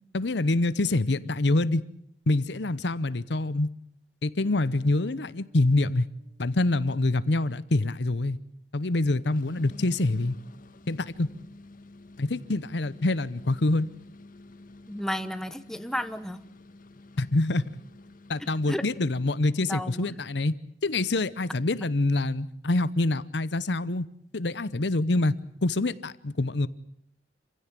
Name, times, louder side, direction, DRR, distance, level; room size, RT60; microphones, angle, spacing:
voice 1, 0.1-1.8 2.3-3.7 4.2-6.1 6.4-8.4 8.7-10.4 10.9-11.3 12.2-13.9 17.2-17.6 18.3-20.5 20.8-24.1 24.3-25.4 25.6-26.7, left 2 dB, 70° left, 17 dB, 0.9 m, -26 dB
sound 1, 4.4-8.7, equal, 25° right, 2.9 m, -57 dB
sound 2, 9.2-19.2, left 2 dB, 50° left, 1.5 m, -49 dB
voice 2, 14.9-16.4 18.7-18.8 19.7-20.2, equal, 5° left, 11 dB, 1.0 m, -32 dB
27.0 x 16.0 x 9.1 m, 0.68 s
head